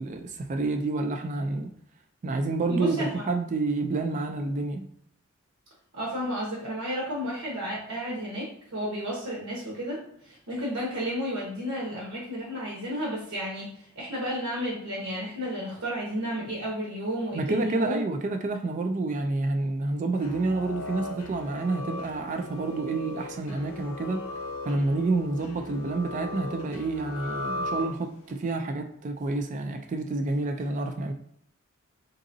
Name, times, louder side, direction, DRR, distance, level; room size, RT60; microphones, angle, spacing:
voice 1, 0.0-1.7 2.2-4.9 17.3-24.3 24.7-31.1, right 3 dB, 35° right, 0.3 m, -29 dB
voice 2, 2.7-3.2 5.9-18.0, equal, 80° right, 1.1 m, -32 dB
sound 1, 20.1-28.3, left 2 dB, 80° left, 0.6 m, -37 dB
3.9 x 3.7 x 2.6 m
head